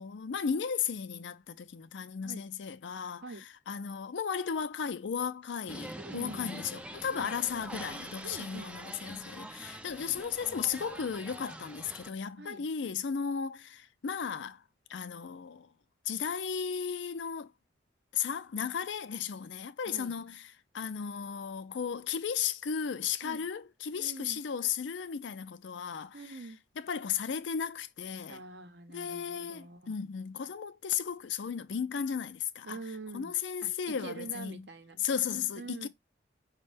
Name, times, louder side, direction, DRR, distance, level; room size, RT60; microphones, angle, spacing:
voice 1, 0.0-3.3 3.7-14.6 14.9-15.7 16.1-17.5 18.1-20.4 20.7-26.4 26.8-28.4 28.9-32.8 33.1-34.7 35.0-35.9, left 7 dB, 75° left, 0.4 m, -35 dB
sound 1, 5.7-12.1, right 1 dB, 5° right, 0.3 m, -45 dB
voice 2, 6.0-6.5 7.1-7.3 8.2-8.7 12.4-12.7 19.8-20.2 23.2-23.5 24.0-24.4 26.1-26.6 28.3-30.0 32.6-33.3 33.6-35.0 35.6-35.9, right 3 dB, 65° right, 0.7 m, -45 dB
5.2 x 2.2 x 3.3 m
head